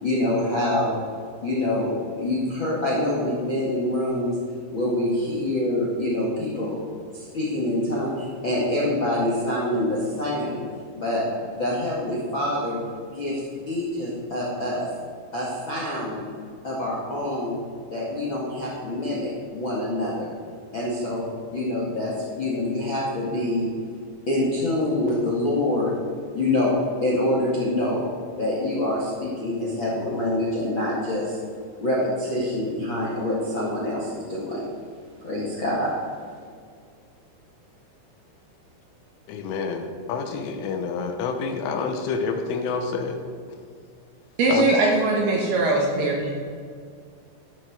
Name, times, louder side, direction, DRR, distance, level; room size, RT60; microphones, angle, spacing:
voice 1, 0.0-1.0 1.4-4.4 4.7-6.7 7.1-10.6 10.9-11.2 11.6-12.8 13.1-13.4 13.6-14.8 15.3-16.3 16.6-17.6 17.9-20.3 20.7-21.2 21.5-23.7 24.3-25.9 26.3-26.7 27.0-28.0 28.4-31.4 31.8-34.6 35.2-35.9, left 1 dB, 50° left, -5 dB, 1.4 m, -25 dB
voice 2, 39.3-43.2 44.5-44.7, left 5 dB, 80° left, 5 dB, 3.3 m, -28 dB
voice 3, 44.4-46.3, right 2 dB, 65° right, -1 dB, 2.6 m, -21 dB
13.0 x 7.6 x 6.4 m, 2.1 s
omnidirectional pair, 5.9 m